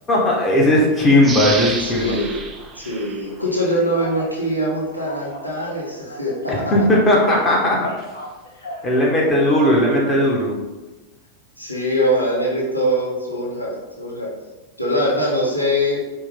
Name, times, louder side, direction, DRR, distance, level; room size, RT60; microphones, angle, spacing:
voice 1, 0.1-2.1 6.5-8.1 8.8-10.6, left 1 dB, 20° left, -3 dB, 0.9 m, -17 dB
sound 1, 1.2-3.9 4.4-4.5, right 4 dB, 20° right, 0.4 m, -30 dB
voice 2, 1.8-2.4 2.7-6.7 11.6-14.3 14.8-16.0, equal, 90° left, -5 dB, 0.8 m, -22 dB
Telephone, 4.0-4.3 4.8-6.5 6.7-8.9 9.5-10.2, right 1 dB, 65° left, 0.9 m, -37 dB
4.7 x 2.2 x 3.5 m, 1.1 s
figure-of-eight pair, 90°, 0 cm